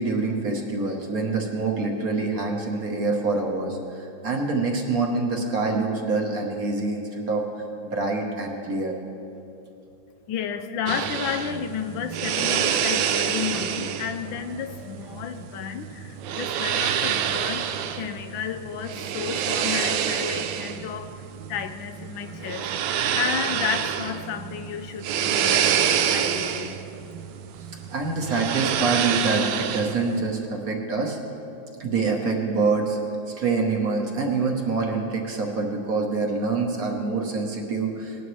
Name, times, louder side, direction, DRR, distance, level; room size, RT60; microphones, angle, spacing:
voice 1, 0.0-7.4 7.8-9.0 27.9-31.2 31.8-33.0 33.4-38.2, right 3 dB, 50° right, 1 dB, 1.4 m, -26 dB
voice 2, 10.3-21.2 21.5-26.8, left 8 dB, 80° left, 8 dB, 1.3 m, -32 dB
sound 1, 10.9-30.2, right 9 dB, 75° right, 1.3 m, -27 dB
18.5 x 11.0 x 3.1 m, 2.9 s
omnidirectional pair, 2.2 m